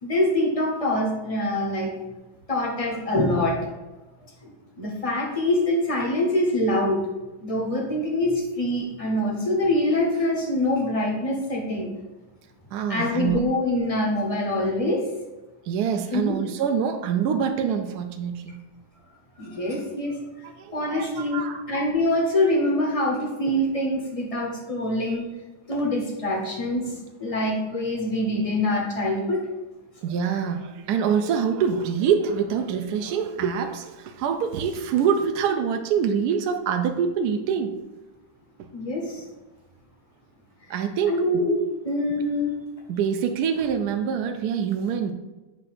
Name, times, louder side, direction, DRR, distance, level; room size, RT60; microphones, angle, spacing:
voice 1, 0.0-1.9 2.5-3.6 4.4-7.0 7.4-11.9 12.9-15.0 16.1-16.3 19.4-20.2 20.7-25.3 25.7-29.4 30.3-30.4 38.7-39.2 41.1-42.6, left 1 dB, 40° left, -1 dB, 0.5 m, -25 dB
voice 2, 12.7-13.4 15.7-18.6 20.4-21.6 30.0-37.7 40.7-41.2 42.9-45.1, right 7 dB, 80° right, 6 dB, 0.8 m, -25 dB
7.6 x 2.6 x 5.8 m, 1.1 s
omnidirectional pair, 2.2 m